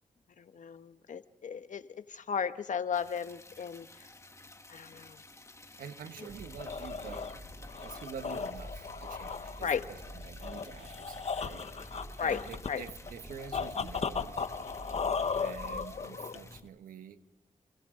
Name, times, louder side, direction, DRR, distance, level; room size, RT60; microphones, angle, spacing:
voice 1, 0.4-4.1 4.7-5.2 9.6-9.9 12.2-12.8, left 7 dB, 65° left, 10 dB, 1.3 m, -35 dB
Liquid, 2.9-16.6, left 2 dB, 20° left, 2.1 m, -53 dB
voice 2, 5.8-7.5 7.8-11.9 12.2-14.4 15.3-17.2, right 7 dB, 85° right, 9 dB, 1.5 m, -47 dB
sound 1, 6.3-16.7, left 5 dB, 50° left, 1.3 m, -37 dB
sound 2, 6.3-15.9, right 1 dB, 30° right, 2.8 m, -49 dB
28.5 x 27.0 x 3.9 m, 0.83 s
cardioid pair, 60°, 14 cm